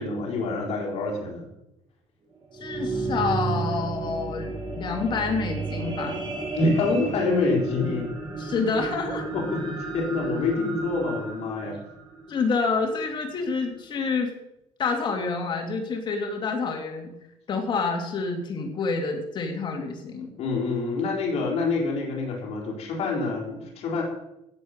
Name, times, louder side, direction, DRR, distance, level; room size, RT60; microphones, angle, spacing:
voice 1, 0.0-1.5 6.6-8.1 8.5-8.6 9.3-11.8 20.4-24.0, left 3 dB, 60° left, -2 dB, 4.2 m, -26 dB
sound 1, 2.3-12.9 13.5-13.6, right 3 dB, 40° right, 5.1 m, -32 dB
voice 2, 2.5-6.3 8.4-9.3 12.3-14.3 14.8-17.1 17.5-20.3, left 4 dB, 40° left, 2 dB, 2.8 m, -28 dB
16.5 x 7.4 x 6.7 m, 0.88 s
cardioid pair, 155°, 12 cm